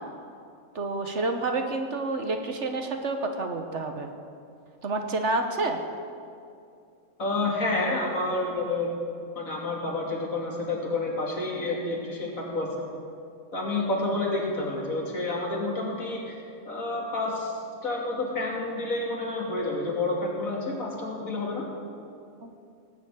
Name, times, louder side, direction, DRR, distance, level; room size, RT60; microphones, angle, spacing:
voice 1, 0.7-4.1 4.8-5.8 22.4-22.5, right 2 dB, 55° right, 5 dB, 1.4 m, -29 dB
voice 2, 7.2-8.9 9.4-12.9 13.5-16.3 16.6-17.5 17.8-21.6, left 2 dB, 70° left, -2 dB, 3.1 m, -29 dB
18.0 x 7.2 x 8.9 m, 2.4 s
omnidirectional pair, 1.5 m